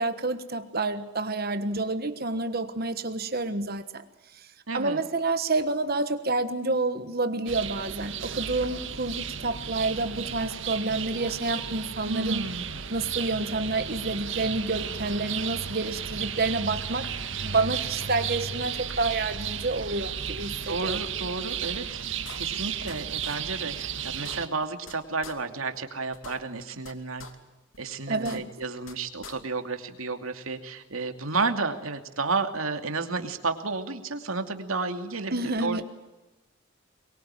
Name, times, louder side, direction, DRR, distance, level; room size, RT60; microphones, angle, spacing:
voice 1, 0.0-4.0 4.3-4.5 4.7-12.4 12.9-17.1 17.4-21.0 28.1-28.4 35.3-35.8, right 3 dB, 45° right, 1.4 m, -29 dB
voice 2, 4.7-5.0 12.0-12.7 20.6-22.0 22.3-27.3 27.8-35.8, right 3 dB, 85° right, 2.7 m, -32 dB
sound 1, 7.5-24.5, right 7 dB, 65° right, 1.7 m, -34 dB
sound 2, 21.7-21.8 22.2-22.9 23.2-23.4 23.7-23.8 24.1-24.9 25.2-25.3 25.7-25.8 26.1-26.9 27.2-27.3 27.7-27.8 28.1-28.9 29.2-29.3, left 5 dB, 75° left, 2.8 m, -44 dB
24.0 x 22.5 x 9.0 m
head